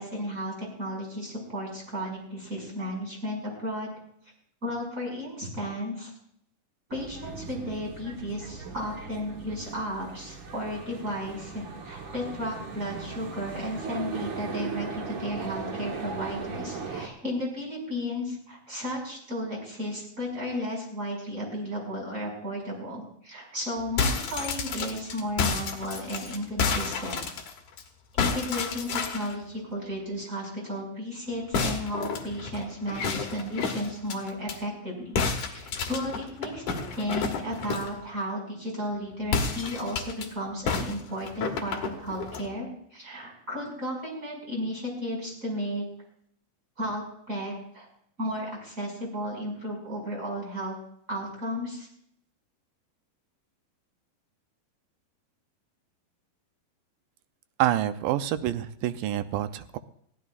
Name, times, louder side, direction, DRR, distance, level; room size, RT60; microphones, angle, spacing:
voice 1, 0.0-3.9 4.6-6.1 6.9-27.2 28.1-35.2 35.4-45.8 46.8-47.9 48.2-50.8 51.1-51.9, equal, 20° right, -1 dB, 6.0 m, -34 dB
sound 1, 6.9-17.1, right 4 dB, 65° right, 1.2 m, -38 dB
sound 2, 23.8-27.8 28.2-29.3 31.5-34.6 35.2-38.0 39.2-40.3 40.7-42.5, left 5 dB, 60° left, 3.0 m, -30 dB
voice 2, 57.6-59.8, right 12 dB, 80° right, 11 dB, 2.1 m, -27 dB
22.0 x 16.0 x 2.5 m, 0.67 s
omnidirectional pair, 4.2 m